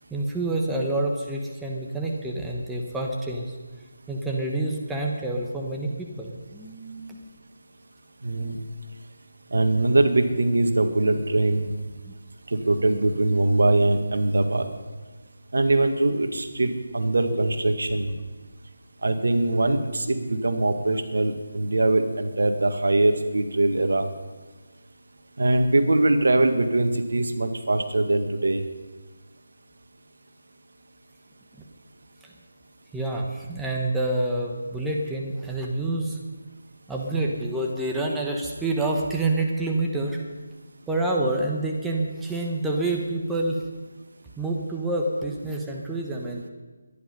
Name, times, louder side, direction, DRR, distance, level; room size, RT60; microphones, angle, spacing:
voice 1, 0.1-3.5 4.1-7.2 12.0-12.1 32.2-32.3 32.9-36.2 36.9-40.2 40.9-43.6 44.4-46.5, right 2 dB, 5° right, -1 dB, 1.2 m, -27 dB
voice 2, 8.2-8.6 9.5-11.7 12.5-14.7 15.5-18.1 19.0-24.1 25.4-28.6, right 2 dB, 70° right, 7 dB, 1.8 m, -22 dB
22.5 x 10.5 x 5.4 m, 1.3 s
figure-of-eight pair, 160°, 0 cm